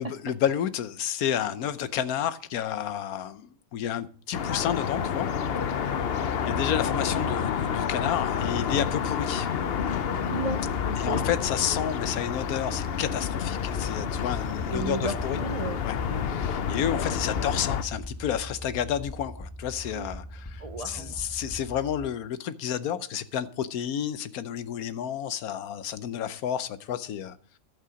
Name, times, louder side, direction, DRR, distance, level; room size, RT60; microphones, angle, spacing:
voice 1, 0.0-5.3 5.7-5.8 6.5-9.5 11.0-15.4 15.8-16.0 16.2-27.6, left 9 dB, 90° left, 1.2 m, -30 dB
sound 1, 4.3-17.8, left 7 dB, 50° left, 0.8 m, -29 dB
sound 2, 8.6-22.1, equal, 10° left, 1.5 m, -41 dB
voice 2, 10.2-11.2 14.7-15.8 16.1-16.3 19.9-20.1 20.6-21.2, right 3 dB, 50° right, 0.4 m, -34 dB
11.0 x 8.4 x 5.1 m
omnidirectional pair, 1.5 m